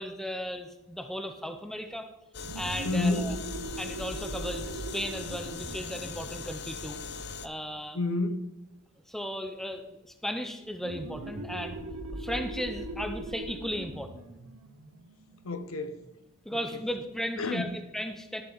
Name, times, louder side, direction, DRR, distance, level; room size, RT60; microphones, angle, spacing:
voice 1, 0.0-2.1 2.6-3.4 3.8-7.0 7.4-8.0 9.1-11.8 12.1-14.3 16.5-18.4, equal, ahead, 0.5 m, -36 dB
sound 1, 2.3-7.5, left 4 dB, 50° left, 0.5 m, -40 dB
sound 2, 2.4-7.7 10.8-16.1, right 2 dB, 90° right, 0.7 m, -41 dB
voice 2, 2.8-3.3 7.9-8.5 15.4-16.0 17.4-17.7, left 2 dB, 85° left, 0.8 m, -29 dB
11.5 x 6.8 x 3.9 m
head